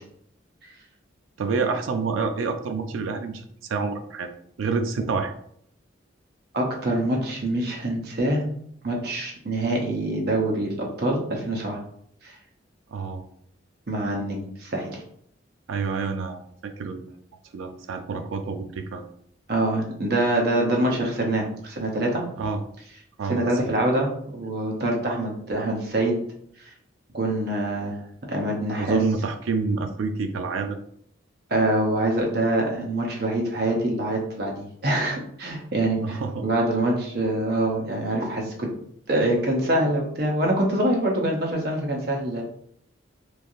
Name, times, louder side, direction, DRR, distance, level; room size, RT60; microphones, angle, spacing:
voice 1, 1.4-3.4 3.7-4.3 4.6-5.3 12.9-13.2 15.7-17.0 17.5-19.0 22.4-22.6 23.2-23.4 28.8-30.8 36.0-36.3, right 4 dB, 90° right, 6 dB, 0.4 m, -28 dB
voice 2, 6.5-8.5 8.8-11.8 12.2-12.4 13.9-15.0 19.5-22.2 23.3-26.2 26.6-26.7 27.1-28.0 28.3-29.0 31.5-38.7 39.1-42.4, right 1 dB, 50° right, 0 dB, 0.7 m, -25 dB
3.1 x 2.4 x 2.6 m, 0.69 s
head